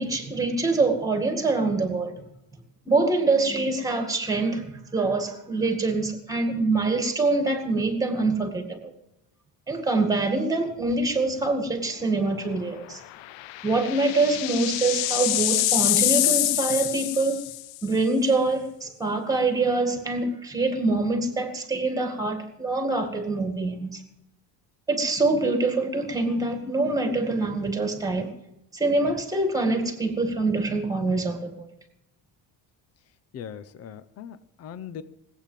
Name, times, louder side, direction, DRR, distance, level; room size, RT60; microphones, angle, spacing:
voice 1, 0.0-2.2 2.9-8.9 9.7-13.0 13.6-17.4 17.8-24.0 24.9-28.3 28.7-31.7, right 3 dB, 10° right, 6 dB, 2.1 m, -25 dB
sound 1, 10.9-11.2 11.6-11.7 13.1-17.8, left 16 dB, 80° left, 0.7 m, -25 dB
voice 2, 33.3-35.0, left 8 dB, 35° left, 14 dB, 0.7 m, -40 dB
19.0 x 8.5 x 7.5 m, 0.85 s
cardioid pair, 175°, 44 cm